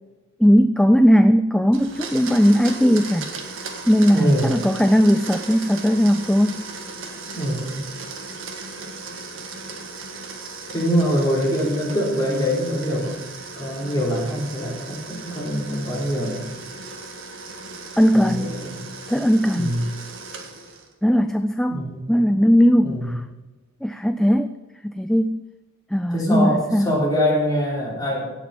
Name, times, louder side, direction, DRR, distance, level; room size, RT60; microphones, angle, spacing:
voice 1, 0.4-3.3 3.9-6.6 18.0-18.6 19.1-19.7 21.0-23.2 23.8-24.6 24.8-25.4 25.9-26.9, equal, ahead, 9 dB, 0.3 m, -18 dB
Domestic sounds home sounds, 1.7-20.9, right 3 dB, 65° right, 1.7 m, -36 dB
voice 2, 4.1-4.5 7.3-7.8 10.7-13.2 13.6-16.5 18.1-18.8 19.5-19.8 21.7-22.0 22.8-23.2 26.1-28.3, equal, 20° left, -4 dB, 3.8 m, -23 dB
17.0 x 6.2 x 5.9 m, 1.2 s
head